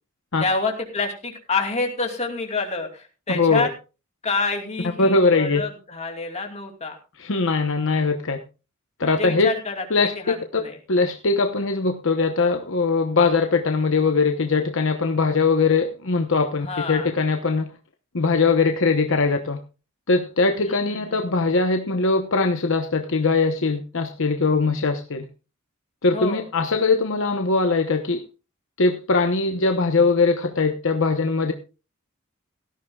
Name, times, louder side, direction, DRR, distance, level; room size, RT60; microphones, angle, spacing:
voice 1, 0.4-3.7 4.2-7.0 9.0-9.8 10.2-10.8 16.6-17.1 20.7-21.2 26.1-26.5, left 3 dB, 30° left, 3 dB, 2.7 m, -28 dB
voice 2, 3.3-3.7 5.0-5.6 7.2-8.4 9.0-9.5 9.9-10.1 10.9-17.7 18.1-19.6 20.1-25.3 26.0-28.2 28.8-31.5, left 4 dB, 60° left, 5 dB, 1.0 m, -21 dB
17.5 x 13.0 x 2.4 m, 0.32 s
head